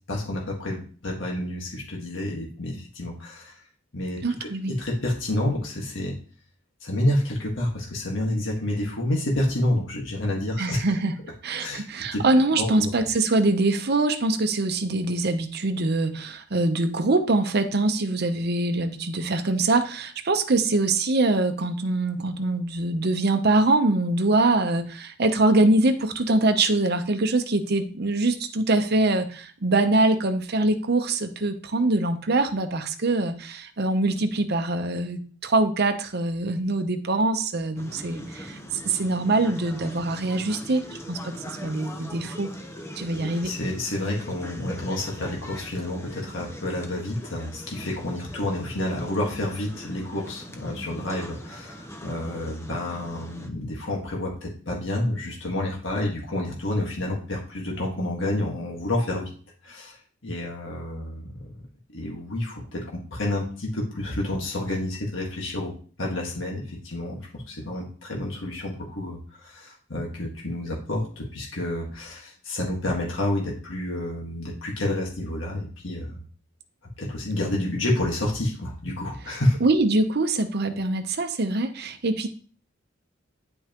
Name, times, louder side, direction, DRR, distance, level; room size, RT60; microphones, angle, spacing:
voice 1, 0.1-3.5 3.9-4.5 4.8-6.1 6.8-10.9 11.5-11.8 12.1-12.2 12.6-12.9 43.1-59.2 59.6-61.5 61.9-65.7 66.0-76.2 77.0-79.6, left 1 dB, 70° left, -1 dB, 1.7 m, -29 dB
voice 2, 4.2-4.7 10.6-11.1 11.4-42.5 43.0-43.6 79.6-82.3, right 2 dB, 55° right, 8 dB, 0.8 m, -23 dB
sound 1, 37.8-53.5, equal, 15° left, 0.9 m, -41 dB
9.7 x 5.3 x 3.0 m, 0.42 s
head